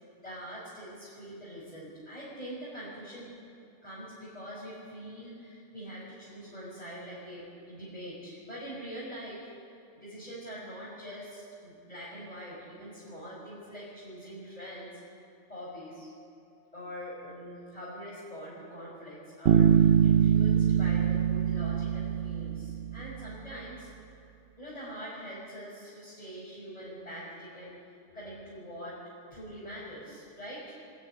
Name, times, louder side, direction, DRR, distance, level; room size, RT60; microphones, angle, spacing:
voice 1, 0.0-3.3 3.8-9.5 9.9-15.0 15.5-16.1 16.7-23.9 24.6-27.8 28.1-29.0 29.3-30.7, equal, 30° left, -9 dB, 6.1 m, -43 dB
Bass guitar, 19.5-23.2, right 8 dB, 60° right, 0.8 m, -24 dB
26.5 x 11.5 x 9.9 m, 2.6 s
omnidirectional pair, 1.4 m